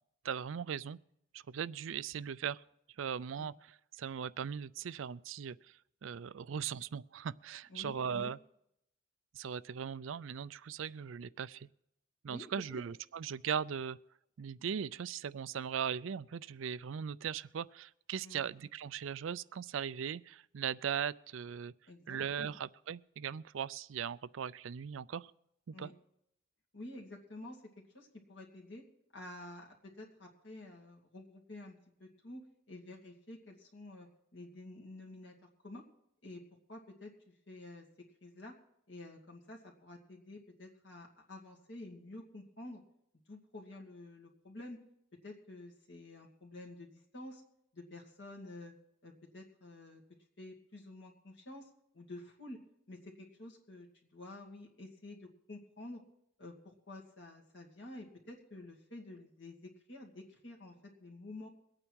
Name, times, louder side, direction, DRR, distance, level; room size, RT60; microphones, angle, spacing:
voice 1, 0.2-1.0 1.3-2.6 3.0-8.4 9.3-11.7 12.2-14.0 14.4-21.7 22.1-25.3 25.7-25.9, right 7 dB, 80° right, 0.4 m, -39 dB
voice 2, 7.7-8.3 12.3-12.5 18.2-18.5 21.9-22.6 25.7-25.9 26.7-27.6 27.9-28.8 29.1-35.3 35.6-35.8 36.2-36.4 36.7-37.8 38.2-38.5 38.9-42.8 43.3-44.8 45.2-47.4 47.7-48.7 49.0-50.0 50.4-51.7 51.9-52.6 52.9-53.9 54.1-56.0 56.4-60.7 61.0-61.5, left 2 dB, 65° left, 2.5 m, -50 dB
22.0 x 8.8 x 4.7 m
head